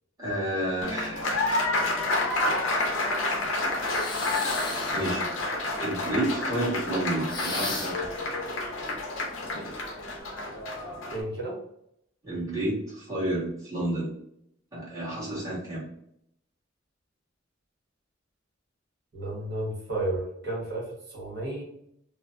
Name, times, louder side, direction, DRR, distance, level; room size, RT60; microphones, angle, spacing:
voice 1, 0.2-1.3 4.9-5.3 5.8-8.0 12.2-14.1 14.7-15.8, right 1 dB, 20° right, -8 dB, 1.4 m, -30 dB
Applause, 0.8-11.2, left 2 dB, 85° left, 0.6 m, -29 dB
sound 1, 3.8-5.2 7.3-8.1, left 3 dB, 25° left, 0.6 m, -35 dB
voice 2, 11.1-11.6 19.1-21.6, right 2 dB, 55° right, -5 dB, 1.3 m, -32 dB
3.2 x 2.0 x 2.4 m, 0.74 s
head